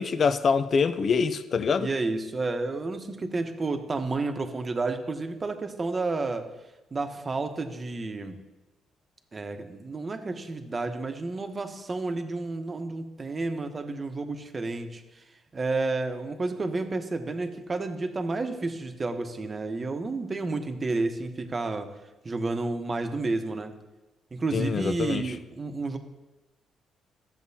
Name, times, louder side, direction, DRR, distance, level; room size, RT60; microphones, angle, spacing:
voice 1, 0.0-1.9 24.5-25.3, left 5 dB, 50° left, 0.6 m, -25 dB
voice 2, 1.8-6.4 6.9-8.4 9.3-15.2 15.5-21.9 22.2-23.7 24.3-26.0, right 3 dB, 30° right, 1.0 m, -31 dB
14.0 x 7.3 x 2.8 m
cardioid pair, 90°, 0 cm